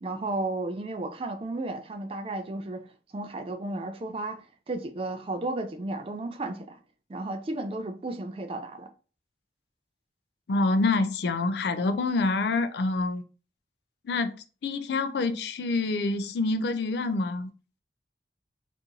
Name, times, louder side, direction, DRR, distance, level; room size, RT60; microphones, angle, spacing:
voice 1, 0.0-6.8 7.1-8.9, right 2 dB, 30° right, 0.3 m, -33 dB
voice 2, 10.5-13.2 14.0-17.5, left 3 dB, 70° left, 0.4 m, -27 dB
2.8 x 2.5 x 3.7 m
head